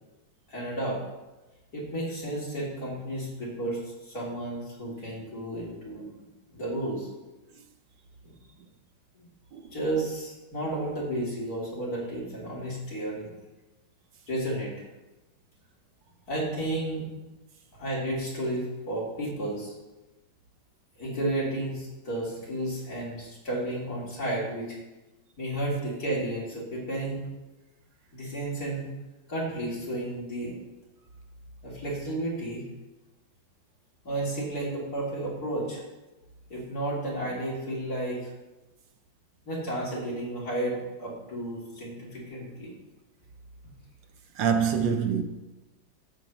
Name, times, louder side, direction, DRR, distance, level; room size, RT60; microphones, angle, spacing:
voice 1, 0.5-1.0 1.7-6.1 6.5-7.1 8.2-8.3 9.2-9.3 9.7-13.3 14.3-14.7 16.3-17.0 17.7-19.7 21.0-24.8 25.4-27.2 28.1-28.9 29.3-30.5 31.6-32.7 34.0-35.8 36.5-38.3 39.5-42.7, right 1 dB, 50° left, 4.0 m, -32 dB
voice 2, 44.4-45.2, right 7 dB, 70° right, 1.4 m, -25 dB
12.0 x 5.2 x 8.0 m
omnidirectional pair, 2.1 m